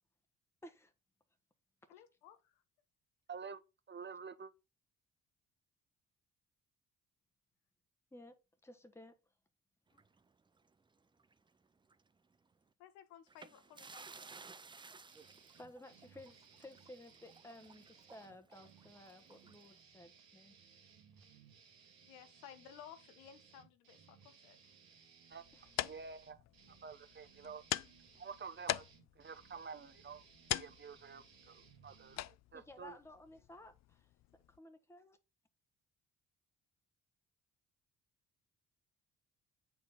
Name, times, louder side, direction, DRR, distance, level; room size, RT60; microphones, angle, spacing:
voice 1, 0.6-0.9 8.1-8.4 8.6-9.2 15.5-20.6 25.5-25.7 32.5-34.1 34.5-35.2, left 1 dB, 5° left, 1.2 m, -55 dB
voice 2, 1.9-2.6 9.9-10.0 12.8-14.5 22.0-24.7, left 9 dB, 80° left, 1.0 m, -57 dB
voice 3, 3.3-3.6 3.9-4.5 25.3-25.4 25.8-26.4 26.8-27.6 28.2-28.9 29.1-30.2 30.5-33.0, right 5 dB, 30° right, 1.0 m, -49 dB
sound 1, 9.9-11.5 11.8-12.0 13.3-19.8, right 4 dB, 15° right, 0.4 m, -57 dB
sound 2, 15.1-32.3, right 6 dB, 75° right, 1.6 m, -63 dB
sound 3, 25.3-34.6, left 14 dB, 50° left, 0.4 m, -44 dB
8.2 x 4.7 x 4.0 m
hypercardioid pair, 50°, 37 cm